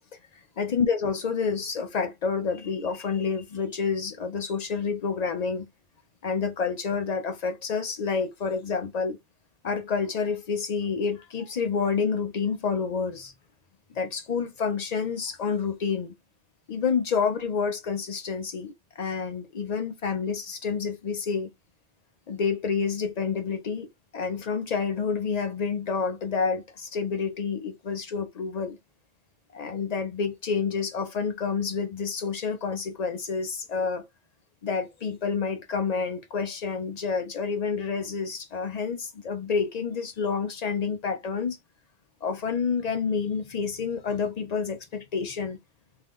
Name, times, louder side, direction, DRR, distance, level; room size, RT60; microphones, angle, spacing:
voice 1, 0.6-5.7 6.2-9.2 9.6-13.3 13.9-16.1 16.7-21.5 22.3-23.9 24.1-28.8 29.5-34.1 34.6-41.6 42.2-45.6, left 5 dB, 65° left, 0.4 m, -28 dB
2.7 x 2.3 x 3.4 m
omnidirectional pair, 1.2 m